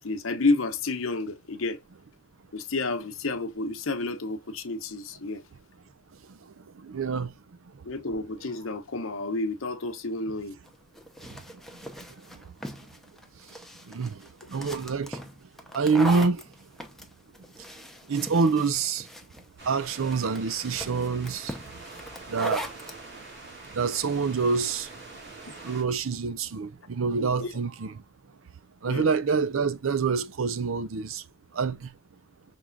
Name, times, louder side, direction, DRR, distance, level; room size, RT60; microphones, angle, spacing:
voice 1, 0.0-1.8 2.5-5.4 7.8-10.6 25.5-25.6 27.4-27.5 28.9-29.1, left 3 dB, 85° left, 0.9 m, -30 dB
voice 2, 6.3-7.4 7.7-7.8 11.2-11.4 11.7-12.5 13.8-15.2 15.7-16.7 17.6-17.7 18.1-19.1 19.7-21.8 22.3-22.7 23.7-24.9 25.6-28.0 28.8-31.2 31.5-32.0, right 5 dB, 85° right, 0.6 m, -27 dB
sound 1, 10.6-23.0, equal, ahead, 0.6 m, -40 dB
sound 2, 19.6-25.8, right 2 dB, 55° right, 2.3 m, -45 dB
6.0 x 3.6 x 2.3 m
head